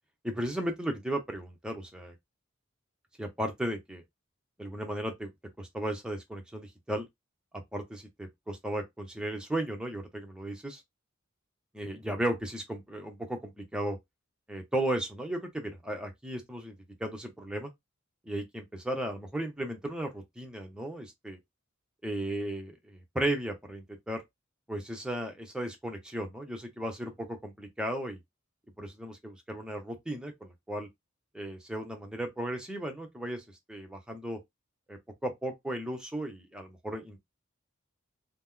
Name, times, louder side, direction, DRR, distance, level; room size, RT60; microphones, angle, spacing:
voice 1, 0.2-2.2 3.2-4.0 4.6-5.3 5.6-7.1 7.5-10.8 11.7-14.0 14.5-17.7 18.3-21.4 22.0-24.2 24.7-28.2 28.8-30.9 31.3-33.4 33.7-34.4 34.9-37.2, right 1 dB, 5° right, 0.7 m, -35 dB
3.0 x 2.0 x 3.6 m
head